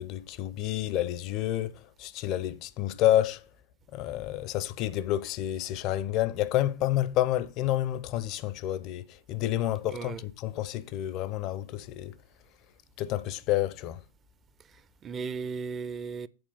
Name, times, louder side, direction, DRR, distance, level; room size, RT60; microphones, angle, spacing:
voice 1, 0.0-3.5 3.9-12.2 13.0-14.0, left 13 dB, 40° left, 0.4 m, -29 dB
voice 2, 9.9-10.2 14.6-16.3, right 5 dB, 25° right, 0.4 m, -36 dB
7.8 x 4.2 x 6.8 m
figure-of-eight pair, 90°, 0 cm